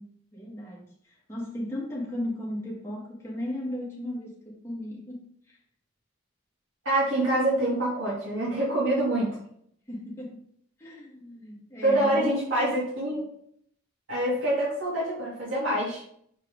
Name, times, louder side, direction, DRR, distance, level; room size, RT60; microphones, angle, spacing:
voice 1, 0.0-5.6 9.9-10.4 10.8-12.4, left 1 dB, 15° left, -4 dB, 1.8 m, -36 dB
voice 2, 6.8-9.4 11.8-13.3 14.1-16.0, right 1 dB, 90° right, -7 dB, 2.6 m, -26 dB
6.5 x 4.8 x 3.8 m, 0.67 s
head